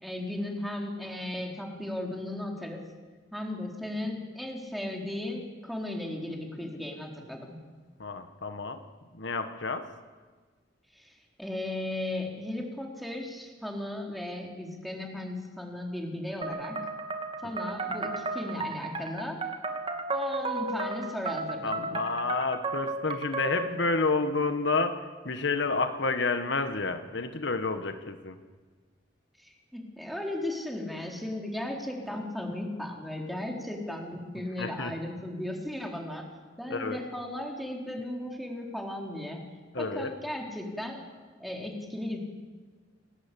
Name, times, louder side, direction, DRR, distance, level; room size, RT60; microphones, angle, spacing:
voice 1, 0.0-2.8 3.3-7.6 10.9-16.8 17.4-19.4 20.1-21.9 29.4-36.2 36.6-39.4 39.8-41.1 41.4-42.2, left 1 dB, ahead, 0 dB, 4.1 m, -36 dB
voice 2, 8.0-8.8 9.2-9.9 21.6-28.4 34.6-34.9 36.7-37.0 39.7-40.1, left 3 dB, 65° left, 8 dB, 1.6 m, -30 dB
sound 1, 16.4-23.8, right 3 dB, 30° right, 2.5 m, -34 dB
29.0 x 19.0 x 8.6 m, 1.4 s
head